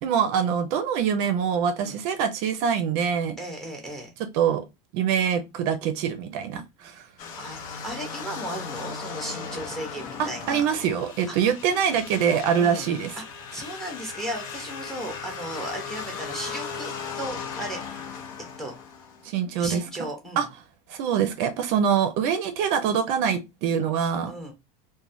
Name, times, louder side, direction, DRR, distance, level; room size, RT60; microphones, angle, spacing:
voice 1, 0.0-3.4 4.3-4.6 4.9-7.0 10.2-13.1 19.2-20.1 20.4-20.5 20.9-24.3, right 7 dB, 50° right, 0.4 m, -24 dB
voice 2, 3.4-4.1 7.4-10.7 12.5-12.9 13.5-16.9 17.2-17.8 18.6-18.8 19.6-20.5 24.3-24.5, right 1 dB, ahead, 0.6 m, -35 dB
sound 1, 7.2-19.3, left 6 dB, 80° left, 0.8 m, -37 dB
3.1 x 2.1 x 2.6 m
cardioid pair, 175°, 17 cm